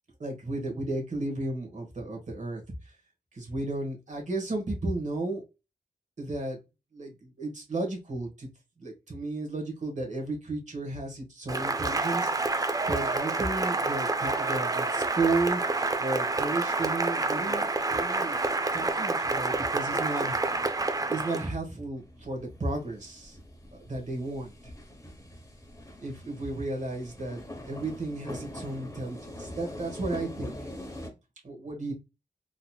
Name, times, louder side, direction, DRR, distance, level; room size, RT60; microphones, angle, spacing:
voice 1, 0.2-2.9 3.3-5.4 6.2-6.6 6.9-8.5 8.8-15.6 16.0-18.4 18.7-20.4 21.1-23.4 23.7-24.7 26.0-30.6 31.4-31.9, right 2 dB, 45° right, 1 dB, 1.3 m, -33 dB
Cheering / Applause, 11.5-21.5, right 3 dB, 20° right, 0.4 m, -28 dB
sound 1, 22.0-31.1, left 1 dB, 20° left, 0.9 m, -43 dB
3.9 x 2.8 x 2.2 m, 0.26 s
wide cardioid pair, 95°, 17 cm